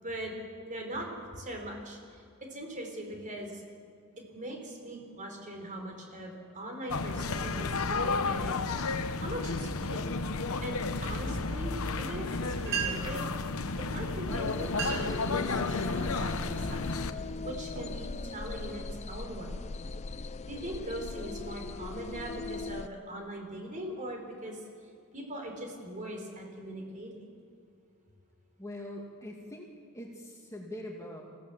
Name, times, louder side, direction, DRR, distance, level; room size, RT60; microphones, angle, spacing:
voice 1, 0.0-0.3 0.7-1.1 1.4-2.0 2.5-3.6 4.3-8.9 9.2-10.1 10.6-13.3 13.8-16.9 17.4-19.6 20.4-24.6 25.1-27.3, right 1 dB, 35° right, 2 dB, 4.6 m, -40 dB
sound 1, 6.9-17.1, left 3 dB, 70° left, 1.0 m, -32 dB
sound 2, 12.4-12.5 12.6-13.2 14.1-14.3 14.6-15.2 15.7-16.1 16.7-16.9 17.5-18.7, right 7 dB, 60° right, 5.1 m, -36 dB
sound 3, 14.3-22.9, left 3 dB, 30° left, 0.5 m, -39 dB
voice 2, 28.6-29.7 29.9-31.2, left 1 dB, 15° left, -1 dB, 2.2 m, -42 dB
27.0 x 16.5 x 7.3 m, 2.3 s
head